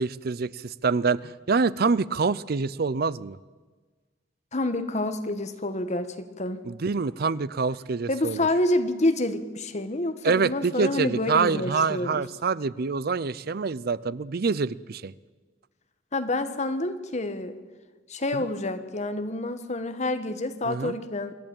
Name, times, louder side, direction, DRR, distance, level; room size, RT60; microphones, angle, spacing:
voice 1, 0.0-3.4 6.6-8.5 10.2-15.1 18.3-18.4 20.7-20.9, right 4 dB, 50° right, 19 dB, 0.5 m, -26 dB
voice 2, 4.5-6.6 8.1-12.2 16.1-17.6 18.1-21.3, left 1 dB, 35° left, 9 dB, 1.4 m, -28 dB
26.5 x 11.0 x 8.9 m, 1.4 s
head